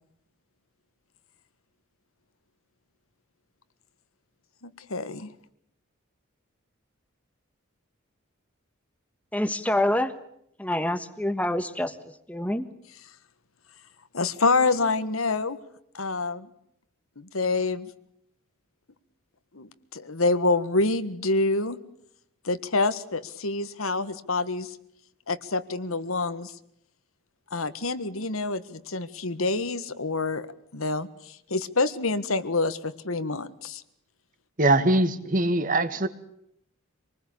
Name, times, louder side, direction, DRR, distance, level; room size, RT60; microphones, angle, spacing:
voice 1, 4.6-5.3 14.1-15.6 15.9-16.5 17.2-17.9 19.5-21.8 22.4-24.8 25.3-26.5 27.5-30.5 30.7-33.8, left 3 dB, 80° left, 12 dB, 1.6 m, -27 dB
voice 2, 9.3-10.1 10.6-12.7, left 1 dB, 5° left, 11 dB, 1.4 m, -27 dB
voice 3, 34.6-36.1, right 2 dB, 40° right, 11 dB, 1.8 m, -22 dB
26.5 x 20.0 x 8.7 m, 0.74 s
head